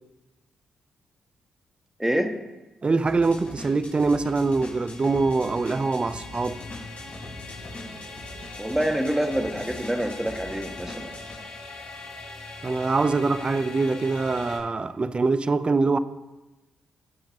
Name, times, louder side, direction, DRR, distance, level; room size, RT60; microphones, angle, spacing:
voice 1, 2.0-2.3 8.6-11.2, right 1 dB, 10° right, 2.1 m, -26 dB
voice 2, 2.8-6.6 12.6-16.0, right 3 dB, 35° right, 0.8 m, -24 dB
sound 1, 3.1-11.4, left 1 dB, 55° left, 4.2 m, -42 dB
sound 2, 3.3-14.6, left 2 dB, 90° left, 3.5 m, -41 dB
21.5 x 7.4 x 3.1 m
hypercardioid pair, 45°, 3 cm